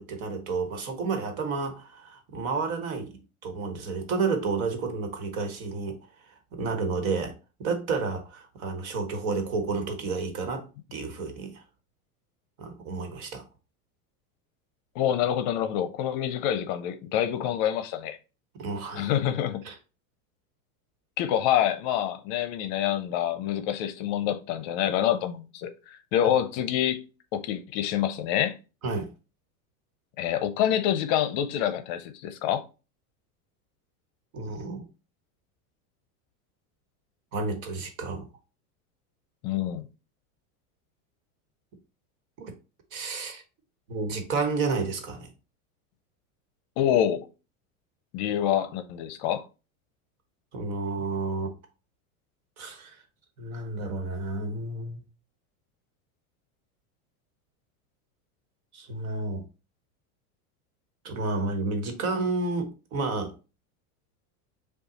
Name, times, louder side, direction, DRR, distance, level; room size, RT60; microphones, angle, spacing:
voice 1, 0.0-6.0 6.3-7.3 7.6-11.6 12.6-13.4 18.6-19.1 19.6-19.7 28.8-29.1 34.3-34.8 37.3-38.3 42.4-42.5 42.9-43.4 43.9-45.3 50.5-51.5 52.6-53.0 53.4-55.0 58.7-59.4 61.0-63.3, right 3 dB, 75° right, 1.4 m, -31 dB
voice 2, 15.0-18.2 19.0-19.6 21.2-27.0 27.3-28.6 30.2-32.6 39.4-39.8 46.8-47.3 48.1-49.5, left 10 dB, 45° left, 0.5 m, -26 dB
5.3 x 2.4 x 4.0 m
supercardioid pair, 145°, 43 cm